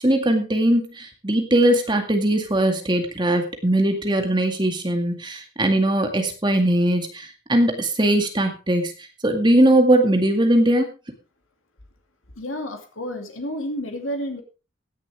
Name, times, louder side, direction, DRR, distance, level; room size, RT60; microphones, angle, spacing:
voice 1, 0.0-8.9 9.2-10.9, right 1 dB, 20° right, 5 dB, 2.0 m, -20 dB
voice 2, 12.4-14.4, equal, 90° left, 4 dB, 2.5 m, -30 dB
16.5 x 10.5 x 3.5 m, 0.31 s
head